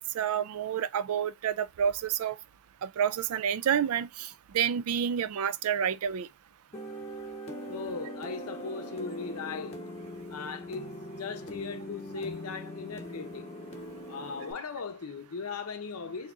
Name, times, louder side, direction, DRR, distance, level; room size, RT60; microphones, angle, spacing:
voice 1, 0.0-2.4 2.8-6.3, right 8 dB, 75° right, 0.4 m, -29 dB
sound 1, 6.7-14.5, equal, 30° left, 1.1 m, -41 dB
voice 2, 7.7-9.8 10.3-13.5 14.1-16.3, left 5 dB, 85° left, 0.6 m, -38 dB
3.6 x 2.8 x 3.7 m
head